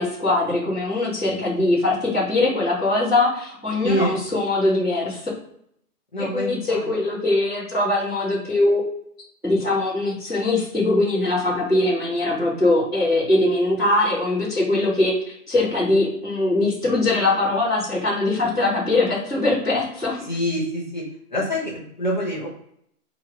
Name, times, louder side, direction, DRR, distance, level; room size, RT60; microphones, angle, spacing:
voice 1, 0.0-5.2 6.2-8.8 9.4-20.2, left 2 dB, ahead, -24 dB, 1.0 m, -21 dB
voice 2, 3.8-4.1 6.1-6.9 20.2-21.0 21.3-22.5, equal, 30° left, -5 dB, 0.9 m, -25 dB
5.6 x 3.0 x 2.4 m, 0.70 s
hypercardioid pair, 180°, 47 cm